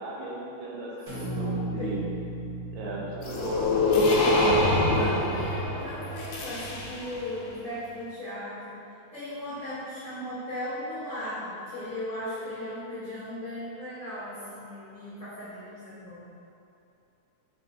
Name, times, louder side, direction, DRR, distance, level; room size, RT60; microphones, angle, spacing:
voice 1, 0.0-2.0 2.7-5.4, right 2 dB, 80° right, -4 dB, 1.9 m, -36 dB
voice 2, 1.1-1.9 4.9-16.3, left 1 dB, 60° left, -16 dB, 0.7 m, -37 dB
sound 1, 1.1-5.3, right 2 dB, 35° right, 1.0 m, -36 dB
sound 2, 3.2-7.2, left 2 dB, 85° left, 2.1 m, -25 dB
4.4 x 3.8 x 2.6 m, 2.7 s
omnidirectional pair, 3.6 m